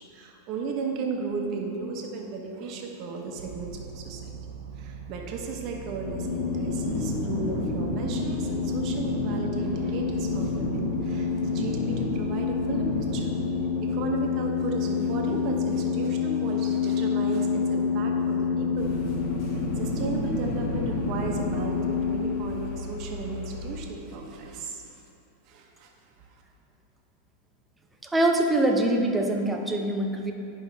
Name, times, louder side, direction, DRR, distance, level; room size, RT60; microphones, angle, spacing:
voice 1, 0.0-4.4 4.8-13.3 13.8-19.1 19.4-25.0 25.5-25.9, right 4 dB, 45° right, 1 dB, 1.1 m, -35 dB
sound 1, 3.4-13.2, right 6 dB, 75° right, 0.6 m, -43 dB
sound 2, 6.1-22.2, left 4 dB, 90° left, 1.4 m, -28 dB
sound 3, 18.8-23.8, left 3 dB, 45° left, 1.4 m, -38 dB
voice 2, 28.1-30.3, right 1 dB, 10° right, 2 dB, 0.7 m, -24 dB
10.5 x 5.4 x 3.5 m, 2.7 s
supercardioid pair, 135°, 0 cm